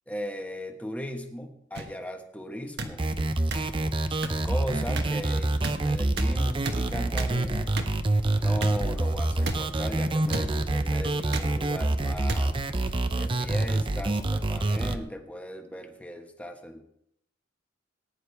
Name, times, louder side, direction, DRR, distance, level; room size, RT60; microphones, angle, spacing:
voice 1, 0.1-3.0 4.4-7.8 8.3-12.6 13.1-16.8, equal, 5° left, 4 dB, 1.2 m, -37 dB
sound 1, 1.7-1.8 2.8-2.9 3.5-3.6 4.2-4.3 5.0-5.1 5.6-5.7 6.2-6.3 6.6-6.8 7.2-7.3 7.8-7.9 8.6-8.7 9.4-9.6 10.3-10.5 11.3-11.5 12.3-12.4 13.2-13.4, right 3 dB, 55° right, 1.3 m, -32 dB
sound 2, 3.0-15.0, right 2 dB, 25° right, 0.6 m, -26 dB
19.0 x 10.0 x 3.4 m, 0.75 s
head